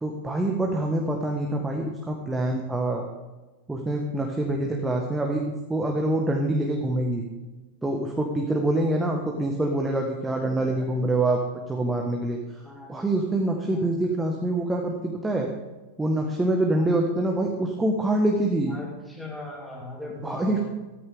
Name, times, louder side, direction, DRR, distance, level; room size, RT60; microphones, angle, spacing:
voice 1, 0.0-3.0 3.7-7.2 7.8-11.4 11.7-15.5 16.0-18.7 20.2-20.6, right 1 dB, 10° right, 1 dB, 1.5 m, -25 dB
voice 2, 10.4-10.9 12.6-12.9 13.7-13.9 16.7-16.9 18.7-20.6, left 1 dB, 5° left, -4 dB, 4.7 m, -39 dB
14.0 x 14.0 x 3.7 m, 1.2 s
figure-of-eight pair, 90°, 0 cm